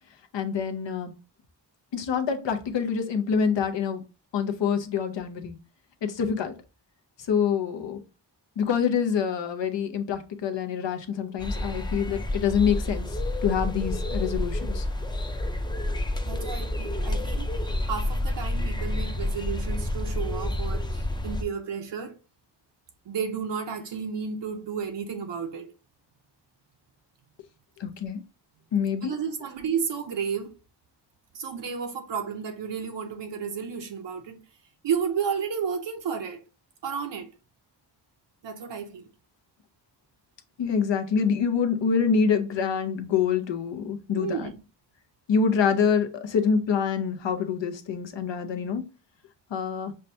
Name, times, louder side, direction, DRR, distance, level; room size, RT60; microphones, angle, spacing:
voice 1, 0.3-1.1 1.9-4.0 4.3-5.6 6.0-6.5 7.3-8.0 8.6-13.1 13.4-14.8 27.8-28.2 28.7-29.1 40.6-44.5 45.3-48.8 49.5-49.9, left 6 dB, 85° left, 0.7 m, -26 dB
sound 1, 11.4-21.4, left 1 dB, 10° left, 0.4 m, -29 dB
voice 2, 16.3-22.2 23.1-25.7 29.0-30.6 31.3-34.4 34.8-36.4 36.8-37.3 38.4-39.1 44.1-44.6, right 6 dB, 80° right, 0.6 m, -32 dB
5.5 x 2.2 x 2.6 m
wide cardioid pair, 95°, 43 cm